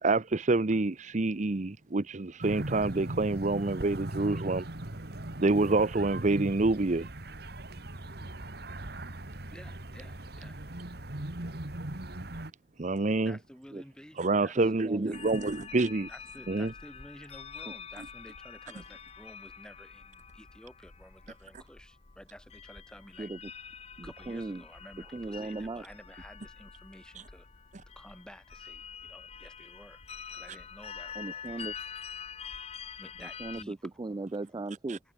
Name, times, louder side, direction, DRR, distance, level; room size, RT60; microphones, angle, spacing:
voice 1, 0.0-4.6 5.4-7.1 12.8-13.4 14.2-16.1 16.5-16.7 34.9-35.0, right 3 dB, 45° right, 0.8 m, -27 dB
sound 1, 2.4-12.5, right 1 dB, 60° right, 2.3 m, -39 dB
voice 2, 9.5-10.6 13.2-14.5 15.1-15.2 16.1-23.3 24.0-27.5 28.0-30.0 30.3-31.8 33.0-33.9, equal, 5° left, 3.5 m, -52 dB
voice 3, 14.6-15.2 23.2-23.4 24.0-24.6 25.1-25.8 31.2-31.7 33.2-35.0, right 2 dB, 25° right, 0.4 m, -37 dB
sound 2, 15.1-33.6, left 6 dB, 35° left, 0.9 m, -46 dB
head